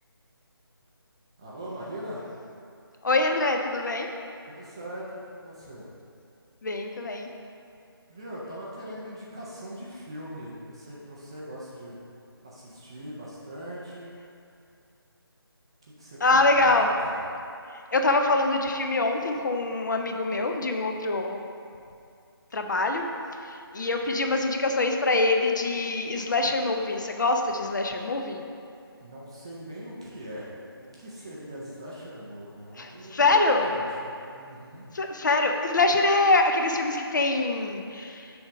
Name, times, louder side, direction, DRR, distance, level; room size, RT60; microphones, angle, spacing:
voice 1, 1.4-2.3 4.5-5.9 8.1-12.0 12.4-14.1 16.0-17.3 29.0-33.1 33.4-34.9, equal, 10° right, -6 dB, 0.3 m, -41 dB
voice 2, 3.0-4.1 6.6-7.3 16.2-16.9 17.9-21.4 22.5-23.0 23.4-28.4 32.8-33.7 34.9-38.3, left 2 dB, 50° left, 4 dB, 0.6 m, -24 dB
7.1 x 3.4 x 5.0 m, 2.4 s
figure-of-eight pair, 160°, 13 cm